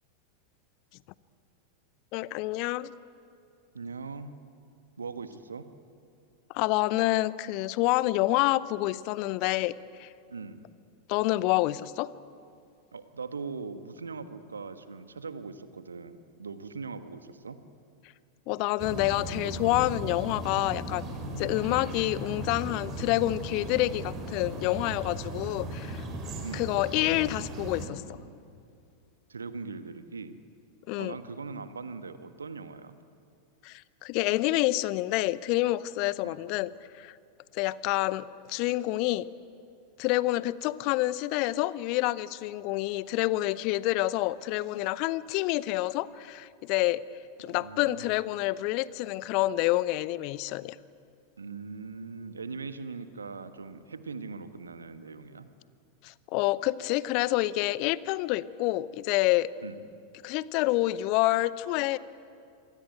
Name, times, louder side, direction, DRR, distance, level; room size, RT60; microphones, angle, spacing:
voice 1, 2.1-2.9 6.5-9.7 10.0-10.1 11.1-12.1 18.5-21.0 21.4-26.0 26.5-28.0 30.9-31.2 33.6-36.7 37.0-37.1 37.5-39.3 40.0-47.0 47.4-50.8 56.0-59.5 60.2-62.0, left 17 dB, 45° left, 19 dB, 0.7 m, -28 dB
voice 2, 3.7-4.4 5.0-5.7 10.3-10.7 12.9-17.6 21.7-21.9 26.4-26.8 29.3-30.4 31.0-33.0 36.2-36.4 47.4-48.2 51.4-55.5 59.6-59.8, right 4 dB, 75° right, 11 dB, 1.5 m, -40 dB
sound 1, 18.8-27.9, right 1 dB, 30° right, 5.3 m, -37 dB
27.0 x 22.0 x 9.2 m, 2.5 s
figure-of-eight pair, 90°, 0 cm